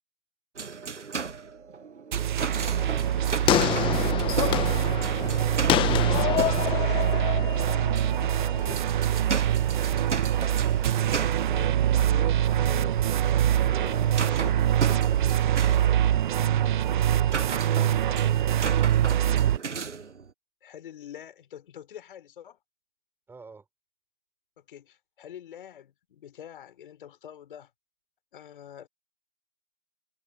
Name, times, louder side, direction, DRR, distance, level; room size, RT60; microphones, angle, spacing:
sound 1, 0.6-7.6 7.9-20.3, right 5 dB, 80° right, 1.3 m, -36 dB
sound 2, 2.1-19.6, right 11 dB, 40° right, 1.7 m, -24 dB
sound 3, 2.6-8.8, left 14 dB, 15° left, 1.5 m, -28 dB
voice 1, 6.2-7.9 11.5-13.0 13.8-14.7 18.1-18.3 20.6-22.6 24.7-27.7 28.3-28.9, left 9 dB, 45° left, 6.6 m, -45 dB
voice 2, 9.5-10.0 13.6-14.5 23.3-23.7, right 4 dB, 5° right, 5.8 m, -48 dB
figure-of-eight pair, 135°, 35 cm